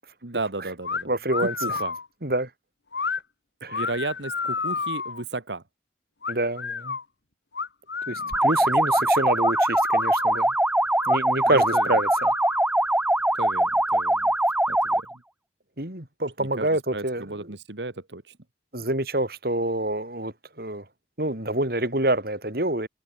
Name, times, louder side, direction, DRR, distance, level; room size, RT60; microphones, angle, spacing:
voice 1, 0.2-1.1 1.4-1.9 3.7-5.6 8.2-8.3 11.5-12.0 13.4-14.3 14.7-15.0 16.4-18.4, right 2 dB, 85° right, 1.9 m, -34 dB
sound 1, 0.8-1.0 1.3-2.1 2.9-3.2 3.7-5.2 6.2-7.0 7.5-8.5 8.9-9.0 9.4-10.4 11.0-11.2 11.6-12.7, left 5 dB, 80° left, 1.7 m, -31 dB
voice 2, 1.1-1.8 2.2-2.5 3.6-3.9 6.3-7.0 8.1-10.5 11.1-12.3 15.8-17.5 18.7-20.9 21.2-22.9, right 1 dB, 55° right, 4.7 m, -27 dB
sound 2, 8.3-15.1, right 1 dB, 5° right, 0.8 m, -22 dB
head